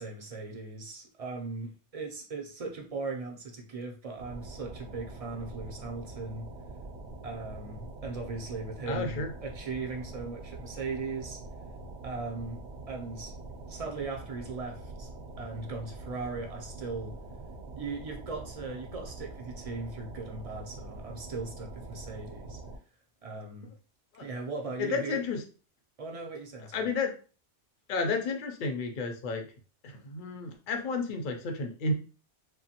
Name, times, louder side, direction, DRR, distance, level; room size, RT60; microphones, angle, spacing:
voice 1, 0.0-6.5 7.2-11.4 12.0-12.6 12.9-13.3 13.7-15.1 15.4-17.2 17.8-22.6 23.2-23.7 24.2-25.2 26.0-26.9, right 4 dB, 50° right, 2 dB, 0.4 m, -38 dB
sound 1, 4.2-22.8, right 2 dB, 80° right, 0.9 m, -44 dB
voice 2, 8.9-9.3 24.2-24.3 24.8-25.4 26.6-27.1 27.9-29.5 29.8-31.9, left 4 dB, 55° left, 5 dB, 0.6 m, -32 dB
2.8 x 2.2 x 2.8 m, 0.37 s
omnidirectional pair, 1.2 m